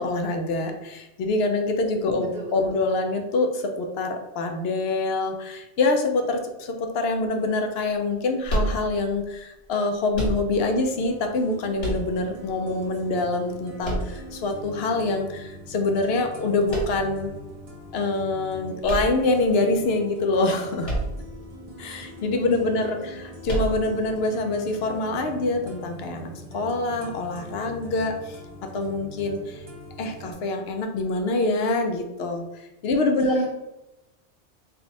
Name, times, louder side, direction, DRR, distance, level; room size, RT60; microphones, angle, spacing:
voice 1, 0.0-17.3 17.9-20.9 21.8-29.6 30.0-33.5, left 2 dB, 70° left, 4 dB, 0.8 m, -25 dB
voice 2, 2.1-2.7 22.4-23.2 32.9-33.5, right 1 dB, 75° right, -2 dB, 1.0 m, -39 dB
sound 1, 8.5-9.2 10.1-10.8 11.8-12.5 13.8-14.6 16.7-17.3 18.8-19.7 20.8-21.4 21.7-21.8 23.4-24.1, right 1 dB, 90° left, 1.6 m, -29 dB
sound 2, 10.5-30.3, left 1 dB, 40° right, 0.6 m, -42 dB
3.4 x 2.4 x 3.9 m, 0.94 s
omnidirectional pair, 1.2 m